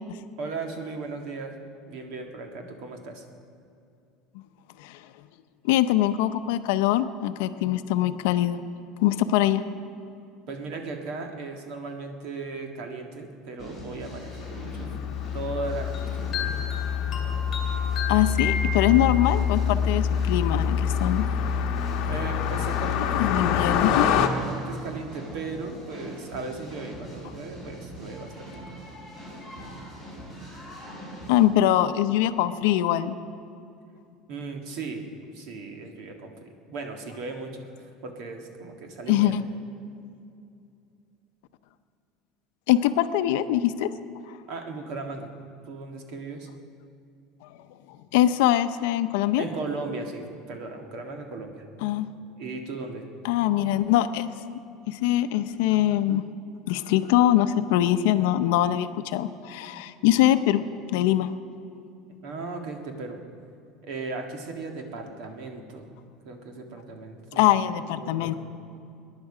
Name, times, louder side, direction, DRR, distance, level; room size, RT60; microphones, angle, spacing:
voice 1, 0.4-1.6 1.9-3.2 10.5-16.6 22.1-24.1 24.4-28.5 34.3-35.0 35.3-39.4 44.5-45.3 45.7-46.5 49.4-51.6 52.4-53.0 62.2-63.2 63.8-65.9 66.2-67.6 67.8-68.3, right 3 dB, 50° right, 4 dB, 1.6 m, -37 dB
voice 2, 5.6-8.6 9.0-9.6 18.1-21.3 23.2-24.0 29.6-29.7 31.3-33.1 39.1-39.4 42.7-43.9 48.1-49.4 51.8-52.1 53.2-54.3 54.9-56.2 56.7-60.6 60.9-61.3 67.4-68.3, left 13 dB, 70° left, 11 dB, 0.6 m, -23 dB
sound 1, 13.6-31.4, right 1 dB, 15° right, 4.6 m, -42 dB
Car passing by, 14.1-24.3, left 8 dB, 45° left, 1.1 m, -26 dB
sound 2, 15.9-19.4, left 5 dB, 20° left, 2.2 m, -33 dB
22.0 x 10.5 x 4.9 m, 2.6 s
cardioid pair, 180°, 0 cm